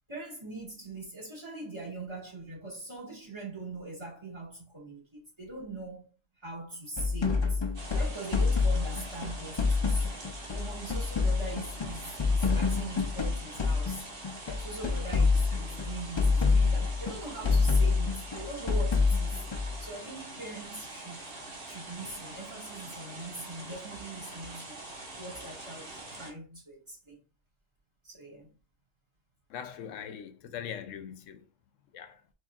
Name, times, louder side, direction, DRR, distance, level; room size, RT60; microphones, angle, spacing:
voice 1, 0.1-6.1 6.4-7.6 8.0-10.1 10.5-14.1 14.6-19.4 19.8-21.4 21.6-24.8 25.2-27.2 28.0-28.5, right 2 dB, 20° right, 1.8 m, -42 dB
sound 1, 7.0-14.0 14.2-19.8, left 4 dB, 35° left, 0.5 m, -27 dB
sound 2, 7.7-26.3, right 2 dB, 45° right, 1.5 m, -44 dB
voice 2, 29.5-31.5 31.9-32.2, left 8 dB, 85° left, 1.0 m, -41 dB
4.5 x 4.3 x 2.4 m
omnidirectional pair, 1.3 m